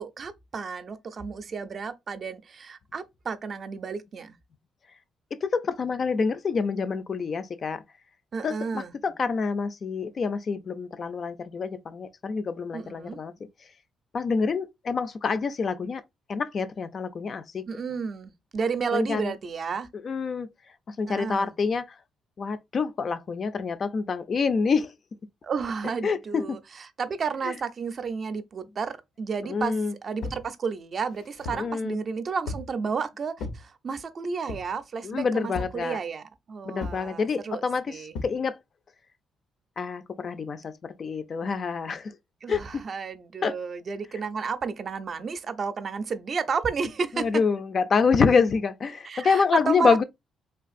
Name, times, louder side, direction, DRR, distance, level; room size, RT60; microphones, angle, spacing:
voice 1, 0.0-4.4 8.3-8.9 12.7-13.2 17.7-19.9 21.1-21.5 25.4-29.7 30.0-38.1 42.4-47.2 49.0-50.0, right 5 dB, 50° right, 0.4 m, -32 dB
voice 2, 5.4-7.8 8.4-13.3 14.1-16.0 16.3-17.6 18.9-19.3 20.0-20.5 20.9-21.9 22.4-24.9 26.0-26.6 27.4-27.5 29.4-29.9 31.5-32.0 35.0-36.0 36.7-38.6 39.8-42.1 42.5-42.8 43.4-43.5 47.1-50.0, left 5 dB, 45° left, 0.3 m, -27 dB
sound 1, 30.2-30.5 31.0-31.7 32.5-32.8 33.4-33.6 34.5-34.8 35.5-35.8 36.8-37.1 38.1-38.4, left 3 dB, 85° left, 0.7 m, -36 dB
3.3 x 2.5 x 2.4 m
cardioid pair, 90°, 0 cm